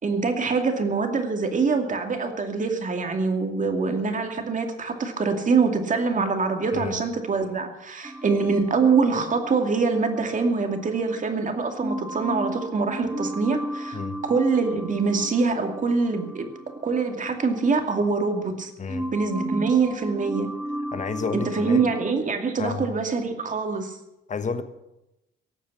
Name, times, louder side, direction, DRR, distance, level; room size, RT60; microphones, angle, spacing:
voice 1, 0.0-16.5 16.8-18.7 19.1-20.5 21.3-24.0, right 4 dB, 40° right, 5 dB, 2.5 m, -24 dB
sound 1, 8.0-11.3 11.8-18.6 18.9-22.1, right 1 dB, 5° right, 1.2 m, -35 dB
voice 2, 13.9-14.2 18.8-19.1 20.9-21.9 22.6-22.9 24.3-24.6, left 5 dB, 35° left, 11 dB, 1.3 m, -30 dB
18.0 x 7.3 x 8.5 m, 0.90 s
cardioid pair, 90°, 20 cm